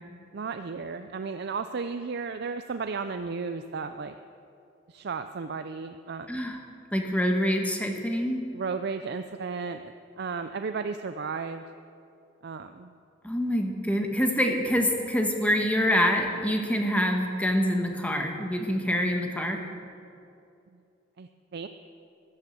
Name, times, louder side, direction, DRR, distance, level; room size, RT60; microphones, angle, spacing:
voice 1, 0.3-4.1 4.9-6.3 8.5-11.6 12.4-12.9 21.2-21.7, right 5 dB, 55° right, 9 dB, 0.5 m, -34 dB
voice 2, 6.3-6.6 6.9-8.4 13.2-19.6, equal, 5° left, 3 dB, 1.3 m, -26 dB
14.5 x 9.9 x 7.7 m, 2.6 s
head